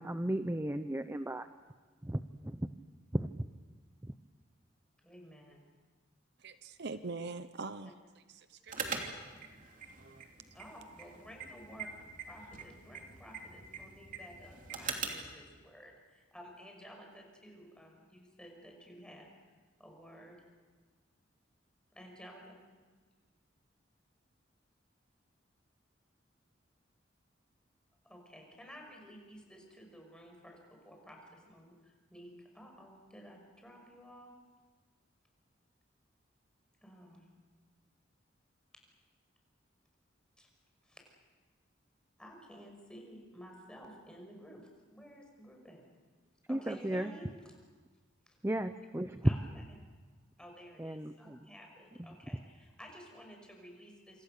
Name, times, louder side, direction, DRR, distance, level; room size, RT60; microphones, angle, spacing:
voice 1, 0.0-1.5 2.0-2.7 3.1-3.5 4.0-4.1 46.5-47.1 48.4-49.3 50.8-51.4 52.0-52.1, right 1 dB, 15° right, 10 dB, 0.7 m, -34 dB
voice 2, 5.0-5.6 10.5-11.9 12.3-19.3 19.8-20.4 21.9-22.6 28.1-34.3 36.8-37.3 40.4-40.5 40.8-41.0 42.2-45.8 46.5-47.3 48.3-48.4 49.2-49.6 50.4-54.2, equal, 5° left, 1 dB, 5.9 m, -53 dB
voice 3, 6.4-7.9 8.3-9.2 10.0-10.3, right 3 dB, 60° right, 11 dB, 0.9 m, -43 dB
sound 1, 8.7-15.3, right 5 dB, 45° right, 3.0 m, -43 dB
27.0 x 26.5 x 6.8 m, 1.4 s
head